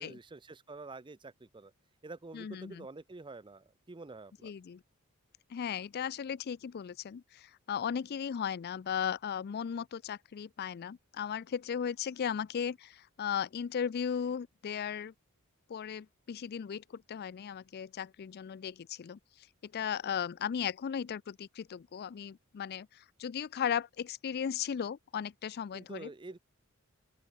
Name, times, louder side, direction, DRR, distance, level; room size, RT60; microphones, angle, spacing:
voice 1, 0.0-1.7 2.0-4.5 25.7-26.4, right 3 dB, 20° right, 0.6 m, -47 dB
voice 2, 2.3-2.9 4.4-4.8 5.5-15.1 15.7-19.2 19.6-26.1, left 8 dB, 50° left, 0.4 m, -36 dB
open air
head